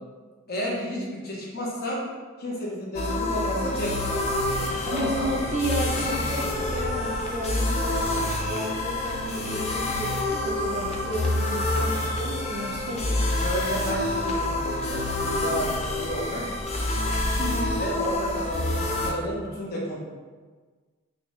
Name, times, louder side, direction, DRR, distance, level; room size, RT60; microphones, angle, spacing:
voice 1, 0.5-2.0 2.4-4.2 4.9-5.5 13.4-16.4 17.8-20.0, equal, 45° left, -4 dB, 0.8 m, -31 dB
sound 1, 2.9-19.1, left 1 dB, 30° left, 0.3 m, -27 dB
voice 2, 4.8-8.0 8.4-13.1 17.4-17.7, equal, 35° right, -2 dB, 0.5 m, -32 dB
3.7 x 2.7 x 3.1 m, 1.4 s
head